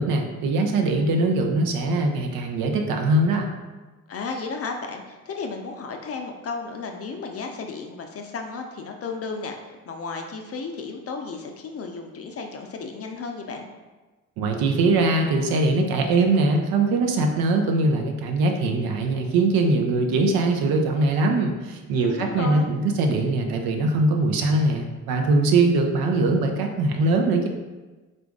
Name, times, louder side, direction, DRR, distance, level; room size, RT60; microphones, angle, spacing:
voice 1, 0.0-3.5 14.4-27.5, right 2 dB, 60° right, 3 dB, 0.6 m, -22 dB
voice 2, 4.1-13.7 21.9-22.7, left 4 dB, 35° left, 3 dB, 0.5 m, -34 dB
3.8 x 2.5 x 3.5 m, 1.2 s
hypercardioid pair, 45°, 41 cm